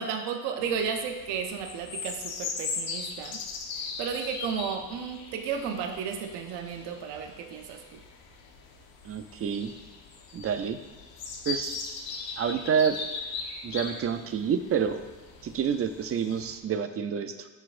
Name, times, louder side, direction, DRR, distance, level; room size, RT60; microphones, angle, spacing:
voice 1, 0.0-3.4 3.8-8.0, right 6 dB, 85° right, 4 dB, 0.8 m, -33 dB
sound 1, 0.6-16.6, left 4 dB, 65° left, 1.0 m, -39 dB
voice 2, 9.0-9.7 10.3-10.8 11.5-11.8 12.4-13.0 13.6-15.0 15.4-17.5, right 7 dB, 35° right, 8 dB, 0.5 m, -28 dB
12.0 x 4.2 x 2.5 m, 1.3 s
cardioid pair, 120°, 40 cm